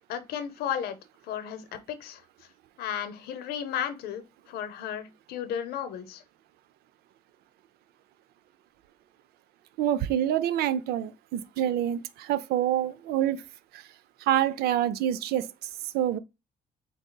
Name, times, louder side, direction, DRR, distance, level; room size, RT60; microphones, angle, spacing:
voice 1, 0.1-1.0 1.3-2.2 2.8-6.2, left 9 dB, 85° left, 0.7 m, -34 dB
voice 2, 9.8-13.4 13.7-13.9 14.2-15.5 15.8-16.2, right 11 dB, 80° right, 0.4 m, -27 dB
4.0 x 3.8 x 2.2 m
cardioid pair, 150°, 16 cm